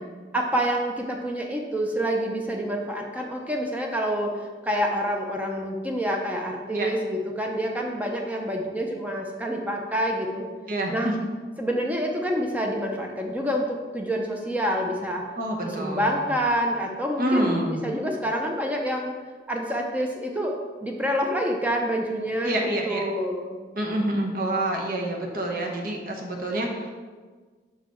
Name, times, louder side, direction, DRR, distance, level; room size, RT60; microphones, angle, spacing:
voice 1, 0.3-4.3 4.6-10.5 10.9-11.1 11.6-15.2 15.6-19.1 19.5-23.6, equal, 10° right, 1 dB, 0.6 m, -27 dB
voice 2, 10.7-11.1 15.4-16.2 17.2-17.8 22.4-23.0 23.8-26.9, right 1 dB, 50° right, 1 dB, 0.9 m, -27 dB
5.7 x 4.8 x 4.3 m, 1.4 s
head